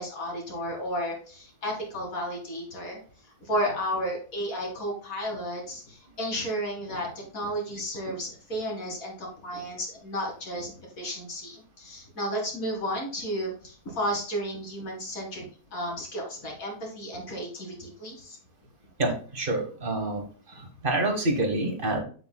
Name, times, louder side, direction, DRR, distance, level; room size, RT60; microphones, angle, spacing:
voice 1, 0.0-3.0 3.4-15.4 15.7-18.4, equal, 60° left, 0 dB, 2.6 m, -33 dB
voice 2, 19.0-20.2 20.5-22.0, right 2 dB, 35° right, 4 dB, 1.4 m, -27 dB
8.1 x 7.8 x 2.2 m, 0.41 s
omnidirectional pair, 1.7 m